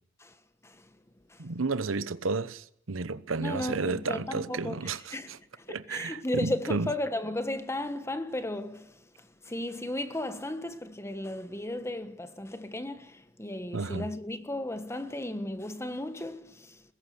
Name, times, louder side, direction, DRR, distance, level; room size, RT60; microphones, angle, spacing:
voice 1, 1.4-5.4 5.7-6.9 13.7-14.1, right 3 dB, 85° right, 1.0 m, -32 dB
voice 2, 3.4-16.8, left 1 dB, 15° left, 1.4 m, -35 dB
20.5 x 17.0 x 8.0 m
head